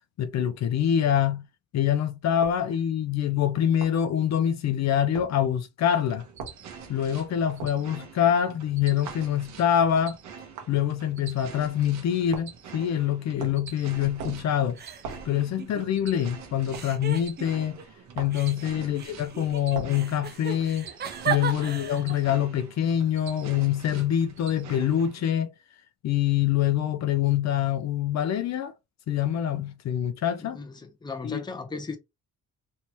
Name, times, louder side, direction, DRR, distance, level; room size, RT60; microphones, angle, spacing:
voice 1, 0.2-1.4 1.7-6.2 6.9-10.2 10.7-14.8 15.2-17.8 18.2-20.9 21.2-25.5 26.0-28.7 29.1-30.6 31.2-31.4, left 10 dB, 60° left, 0.5 m, -25 dB
sound 1, 2.4-2.6 3.8-4.0 5.1-5.3 6.4-6.6 7.6-7.8 9.1-9.3 10.6-10.8 12.3-12.6 13.4-13.7 14.2-14.5 15.0-15.3 16.7-16.9 18.1-18.5 19.7-20.0, right 5 dB, 85° right, 1.1 m, -39 dB
sound 2, 6.1-25.2, right 7 dB, 65° right, 1.0 m, -46 dB
sound 3, 13.9-14.4 14.8-16.2 16.7-17.8 18.3-22.3, right 8 dB, 35° right, 0.5 m, -36 dB
voice 2, 30.5-32.0, left 4 dB, 15° left, 0.7 m, -36 dB
3.3 x 2.8 x 2.9 m
cardioid pair, 135°, 31 cm